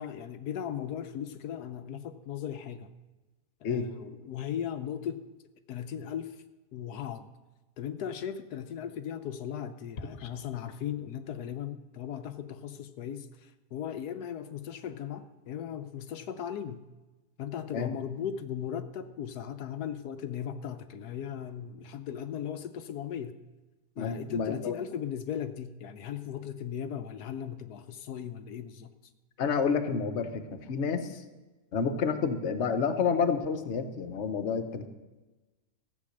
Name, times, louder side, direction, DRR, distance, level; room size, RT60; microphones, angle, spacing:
voice 1, 0.0-2.9 3.6-5.2 5.7-6.4 6.7-7.4 7.8-16.8 17.4-23.4 24.0-28.9, left 9 dB, 85° left, 9 dB, 1.3 m, -37 dB
voice 2, 24.0-24.8 29.4-31.2 31.7-34.9, left 5 dB, 50° left, 8 dB, 1.2 m, -29 dB
14.5 x 8.4 x 6.5 m, 1.1 s
omnidirectional pair, 1.6 m